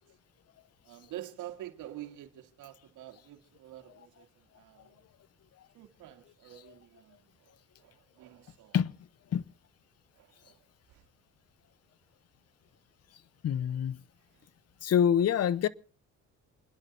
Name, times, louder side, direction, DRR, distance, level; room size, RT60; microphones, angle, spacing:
voice 1, 0.9-5.0 5.7-8.8 10.1-11.0 14.3-14.5, right 13 dB, 90° right, 2.0 m, -48 dB
voice 2, 13.4-14.0 14.8-15.7, left 9 dB, 55° left, 0.9 m, -26 dB
28.5 x 10.5 x 4.0 m
cardioid pair, 90°, 30 cm